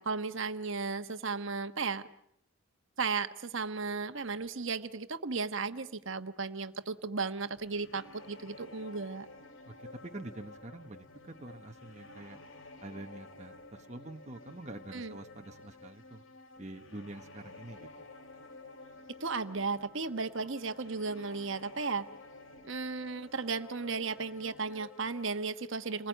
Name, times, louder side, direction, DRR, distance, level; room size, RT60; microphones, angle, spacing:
voice 1, 0.0-2.0 3.0-9.3 14.9-15.2 19.2-22.0 22.6-26.1, right 4 dB, 60° right, 9 dB, 1.3 m, -35 dB
sound 1, 7.6-25.2, left 2 dB, 60° left, 2.3 m, -52 dB
voice 2, 9.7-12.4 12.8-16.2 16.6-17.9, right 2 dB, 30° right, 5 dB, 1.0 m, -46 dB
28.5 x 21.0 x 9.1 m, 0.74 s
head